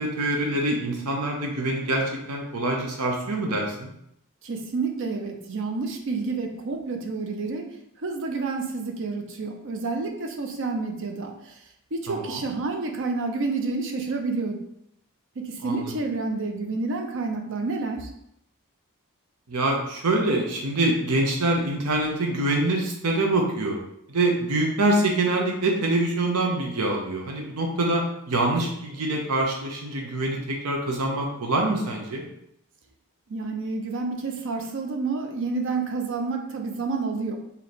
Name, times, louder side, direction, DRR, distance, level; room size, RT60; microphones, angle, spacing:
voice 1, 0.0-3.9 12.1-12.4 15.6-15.9 19.5-23.8 24.1-32.2, right 2 dB, 90° right, 0 dB, 0.8 m, -25 dB
voice 2, 4.4-7.7 8.0-11.5 11.9-14.6 15.4-18.1 33.3-37.4, right 3 dB, 60° right, 4 dB, 0.6 m, -29 dB
3.2 x 2.8 x 4.1 m, 0.77 s
head